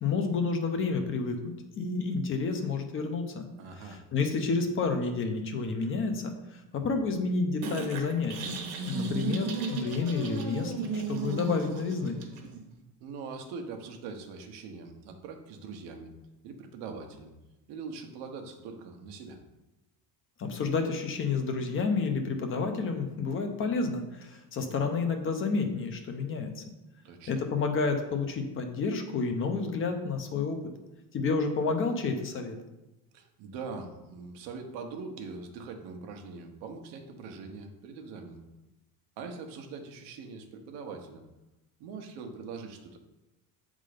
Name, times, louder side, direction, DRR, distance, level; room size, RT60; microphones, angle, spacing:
voice 1, 0.0-3.5 3.8-8.6 8.9-12.2 20.4-26.6 27.3-30.6 31.1-32.6, left 4 dB, 30° left, 5 dB, 0.6 m, -30 dB
voice 2, 3.6-4.0 13.0-16.1 16.4-17.3 17.7-19.4 27.0-27.4 33.1-38.4 39.2-41.2 41.8-43.0, right 4 dB, 80° right, 4 dB, 1.1 m, -42 dB
sound 1, 7.6-12.6, right 3 dB, 60° right, 1.2 m, -35 dB
7.5 x 3.7 x 5.1 m, 0.99 s
cardioid pair, 165°, 41 cm